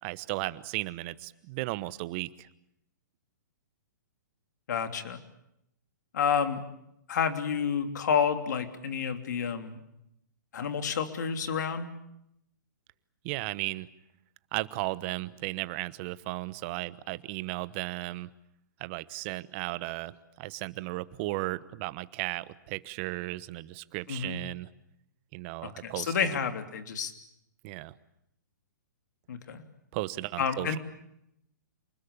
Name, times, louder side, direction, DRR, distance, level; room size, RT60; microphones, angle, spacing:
voice 1, 0.0-2.5 13.2-13.9 14.5-18.3 18.8-24.7 25.3-26.3 27.6-27.9 29.9-30.8, right 19 dB, 40° right, 17 dB, 1.1 m, -35 dB
voice 2, 4.7-5.2 6.1-6.6 7.1-9.8 10.5-11.9 24.1-24.4 25.6-27.1 29.3-29.6 30.4-30.8, left 7 dB, 65° left, 7 dB, 3.2 m, -29 dB
28.5 x 20.5 x 8.7 m, 0.81 s
hypercardioid pair, 130°, 10 cm